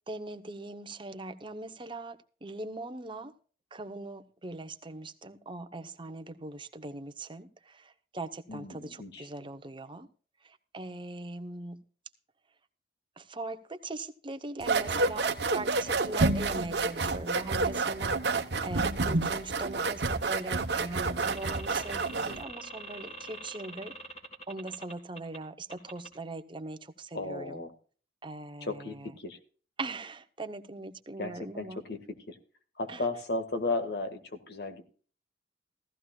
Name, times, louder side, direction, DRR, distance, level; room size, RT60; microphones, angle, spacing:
voice 1, 0.1-3.3 3.7-10.1 10.4-11.8 13.2-23.9 24.5-27.6 28.2-29.1 29.8-31.8 32.9-33.0, right 2 dB, 30° right, 0.9 m, -41 dB
voice 2, 8.5-9.3 27.1-27.7 28.6-29.4 31.2-32.4 32.8-34.8, left 2 dB, 65° left, 1.9 m, -35 dB
sound 1, 14.6-22.4, right 3 dB, 65° right, 1.1 m, -29 dB
sound 2, 21.2-25.4 25.7-26.1, right 2 dB, 35° left, 3.2 m, -44 dB
15.5 x 14.5 x 2.4 m
head